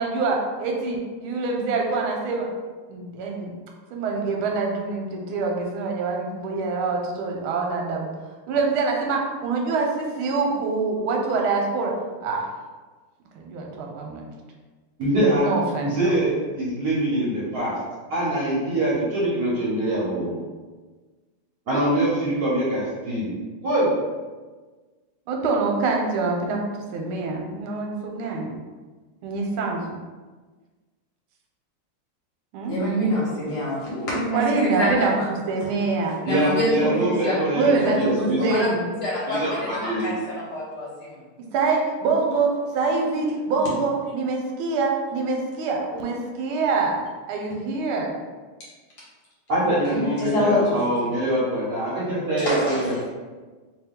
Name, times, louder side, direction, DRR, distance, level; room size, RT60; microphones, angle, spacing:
voice 1, 0.0-2.5 2.9-3.5 3.9-8.1 8.5-11.9 12.2-12.5 13.3-14.3 15.4-16.1 25.3-26.6 26.9-28.6 29.2-30.0 32.5-32.8 34.3-36.2 36.8-36.9 37.5-38.9 41.5-47.0 47.3-48.1, right 4 dB, 90° right, 1 dB, 1.5 m, -25 dB
voice 2, 15.0-17.8 18.1-20.4 21.7-23.3 23.6-23.9 36.2-38.5 39.3-40.1 49.5-53.0, right 1 dB, 55° right, -7 dB, 1.2 m, -24 dB
voice 3, 32.7-35.1 36.2-36.7 37.0-37.4 38.1-38.7 39.0-39.4 40.0-40.9 49.9-50.6 52.4-52.8, left 1 dB, 55° left, -7 dB, 1.7 m, -25 dB
3.3 x 3.0 x 3.5 m, 1.3 s
omnidirectional pair, 2.3 m